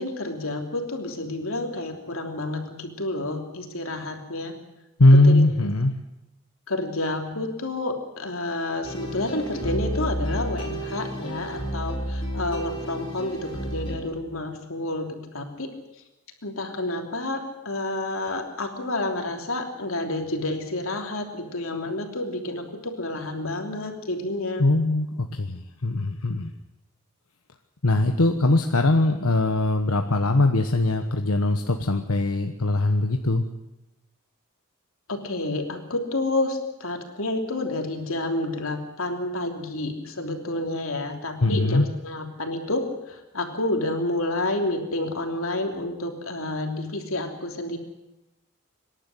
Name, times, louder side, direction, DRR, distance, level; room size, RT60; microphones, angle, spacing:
voice 1, 0.0-4.6 5.2-5.4 6.7-15.7 16.4-24.6 35.1-47.8, left 2 dB, 70° left, 3 dB, 3.2 m, -29 dB
voice 2, 5.0-5.9 24.6-26.5 27.8-33.4 41.4-41.9, left 2 dB, 90° left, 5 dB, 1.2 m, -21 dB
sound 1, 8.8-14.0, right 1 dB, 25° left, 4.5 m, -31 dB
25.5 x 11.5 x 10.0 m, 0.95 s
head